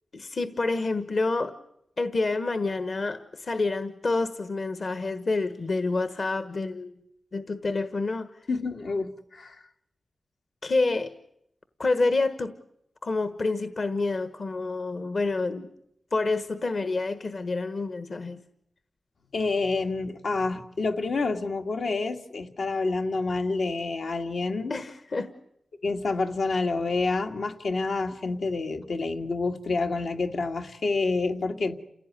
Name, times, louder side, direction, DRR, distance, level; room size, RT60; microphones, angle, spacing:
voice 1, 0.1-1.5 2.0-6.9 7.3-8.3 10.6-11.1 11.8-12.5 13.0-15.7 16.1-18.4 24.7-25.3, left 3 dB, 50° left, 11 dB, 1.3 m, -28 dB
voice 2, 8.5-9.6 19.3-24.7 25.8-31.7, left 3 dB, 75° left, 4 dB, 2.0 m, -28 dB
29.0 x 16.5 x 9.8 m, 0.78 s
wide cardioid pair, 155°, 0 cm